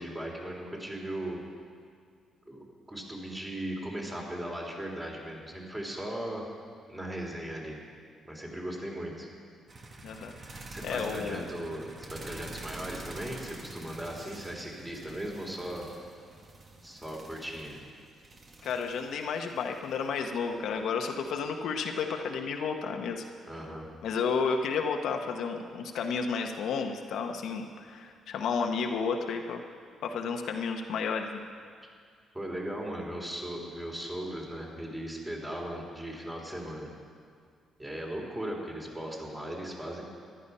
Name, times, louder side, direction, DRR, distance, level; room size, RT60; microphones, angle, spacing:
voice 1, 0.0-1.4 2.5-6.4 6.9-7.8 8.2-9.3 10.7-15.9 16.8-17.8 23.5-23.9 32.3-36.9 37.8-40.0, right 1 dB, 15° right, -1 dB, 3.3 m, -38 dB
sound 1, 9.7-22.6 24.2-24.8 26.5-26.6, right 2 dB, 40° right, 1.6 m, -47 dB
voice 2, 10.0-10.3 10.8-11.4 18.6-23.2 24.0-29.6 30.0-31.4, left 5 dB, 75° left, 4 dB, 1.0 m, -32 dB
14.0 x 11.5 x 5.5 m, 2.1 s
cardioid pair, 90°, 0 cm